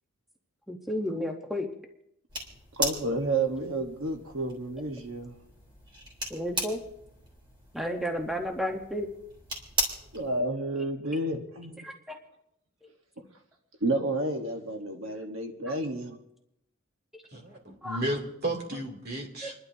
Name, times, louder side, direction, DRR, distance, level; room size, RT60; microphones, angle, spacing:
voice 1, 0.7-1.7 6.3-6.8 7.7-9.1 11.8-12.2 12.8-12.9 17.1-17.2 17.8-18.0 19.4-19.5, equal, ahead, 2 dB, 0.9 m, -32 dB
sound 1, 2.3-10.4, equal, 25° right, 3.3 m, -37 dB
voice 2, 2.8-5.3 10.1-11.8 13.8-16.2, right 2 dB, 70° right, 4 dB, 1.2 m, -30 dB
voice 3, 17.3-19.5, right 1 dB, 50° right, 0 dB, 2.7 m, -33 dB
29.5 x 11.5 x 2.7 m, 0.83 s
head